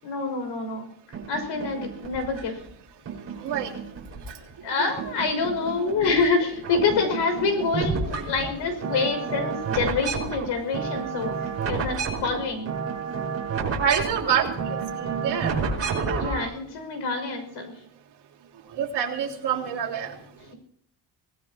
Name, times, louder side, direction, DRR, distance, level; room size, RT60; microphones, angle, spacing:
voice 1, 0.0-0.9 1.3-2.6 4.6-12.7 16.2-17.7 20.0-20.5, left 4 dB, 75° left, 5 dB, 6.0 m, -27 dB
sound 1, 1.1-2.6 3.1-4.6 5.0-6.3 6.5-16.5, right 5 dB, 35° right, 5.1 m, -31 dB
voice 2, 3.4-3.7 5.9-6.0 13.8-16.2 18.8-20.1, right 8 dB, 65° right, -1 dB, 3.4 m, -27 dB
25.0 x 19.0 x 2.9 m, 0.67 s
cardioid pair, 180°, 43 cm